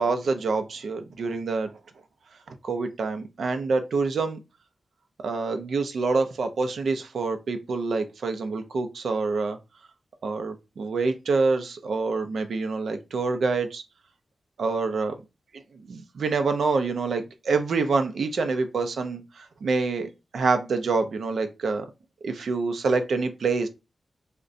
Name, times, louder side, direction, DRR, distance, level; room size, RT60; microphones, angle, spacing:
voice 1, 0.0-1.8 2.5-4.4 5.2-9.6 10.2-13.8 14.6-15.1 15.9-21.9 22.2-23.7, right 4 dB, 85° right, 0.4 m, -26 dB
2.5 x 2.1 x 3.7 m
wide cardioid pair, 115°, 0 cm